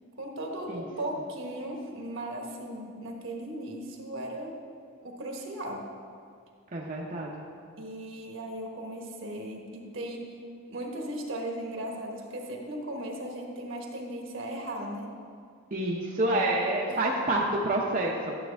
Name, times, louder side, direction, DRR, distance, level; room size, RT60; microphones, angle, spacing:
voice 1, 0.2-4.6 5.0-5.9 7.8-10.4 10.7-15.1 16.9-17.0, right 1 dB, 65° right, 1 dB, 1.3 m, -37 dB
voice 2, 6.7-7.4 15.7-18.4, right 1 dB, 40° right, -3 dB, 0.7 m, -28 dB
12.0 x 7.3 x 3.4 m, 2.2 s
head